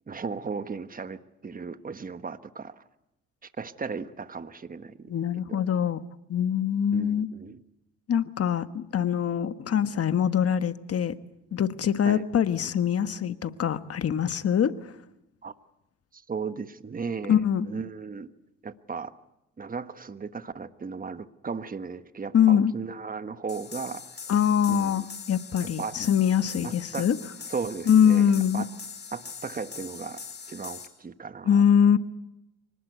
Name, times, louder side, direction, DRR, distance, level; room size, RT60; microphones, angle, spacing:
voice 1, 0.1-2.8 3.4-5.1 5.5-5.7 6.9-7.6 12.0-12.2 15.4-15.5 16.1-18.3 18.6-19.1 19.6-24.0 24.7-25.1 25.6-26.0 26.6-27.1 27.5-28.7 29.1-30.2 30.5-31.6, right 5 dB, 30° right, 11 dB, 1.3 m, -36 dB
voice 2, 5.1-6.0 6.3-7.3 8.1-11.1 11.5-14.7 17.3-17.7 22.3-22.7 24.3-27.2 27.9-28.6 31.4-32.0, left 8 dB, 50° left, 11 dB, 1.4 m, -23 dB
sound 1, 23.5-30.9, left 5 dB, 35° left, 4.9 m, -42 dB
25.0 x 19.0 x 8.1 m, 0.87 s
cardioid pair, 90°, 30 cm